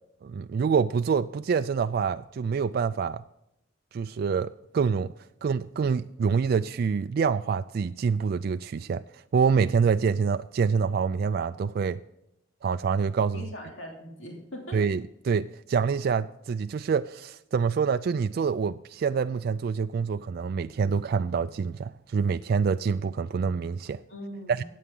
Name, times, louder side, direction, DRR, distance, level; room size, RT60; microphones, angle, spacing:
voice 1, 0.2-3.2 3.9-5.1 5.4-12.0 12.6-13.4 14.7-24.0 24.5-24.6, right 6 dB, 55° right, 0.3 m, -26 dB
voice 2, 13.3-14.8 24.1-24.6, equal, 80° left, 2.8 m, -40 dB
14.5 x 9.3 x 3.8 m
head